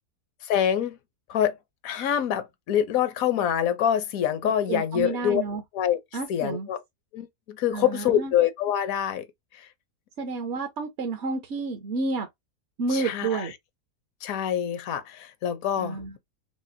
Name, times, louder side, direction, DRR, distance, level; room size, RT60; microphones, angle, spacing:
voice 1, 0.4-1.0 1.3-1.6 1.8-5.4 5.7-6.0 6.3-6.8 7.1-9.3 9.5-9.7 12.9-13.5 14.2-16.0, left 10 dB, 70° left, 1.1 m, -25 dB
voice 2, 4.4-5.6 6.1-6.7 7.7-8.3 10.2-12.3 12.8-13.5 15.8-16.2, right 4 dB, 60° right, 0.9 m, -30 dB
4.9 x 2.0 x 2.7 m
omnidirectional pair, 1.5 m